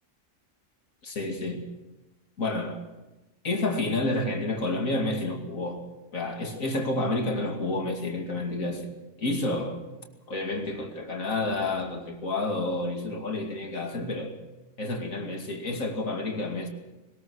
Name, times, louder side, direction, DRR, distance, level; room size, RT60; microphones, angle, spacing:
voice 1, 1.0-1.6 2.4-2.8 3.4-5.8 6.1-8.9 9.2-9.8 10.3-14.3 14.8-16.7, left 2 dB, 90° left, 2.9 m, -29 dB
21.5 x 20.0 x 6.4 m
omnidirectional pair, 1.4 m